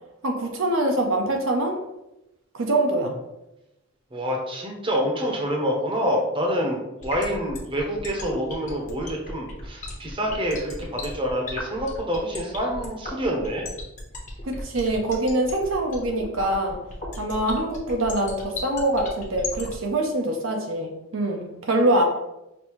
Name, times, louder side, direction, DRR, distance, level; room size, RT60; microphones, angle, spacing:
voice 1, 0.2-1.8 2.5-3.1 14.4-16.8 17.2-22.0, right 1 dB, 70° right, 2 dB, 0.6 m, -24 dB
voice 2, 4.1-13.7, equal, 25° right, 0 dB, 0.8 m, -27 dB
sound 1, 7.0-19.7, left 3 dB, 35° left, 0.9 m, -35 dB
5.3 x 2.6 x 3.0 m, 0.92 s
head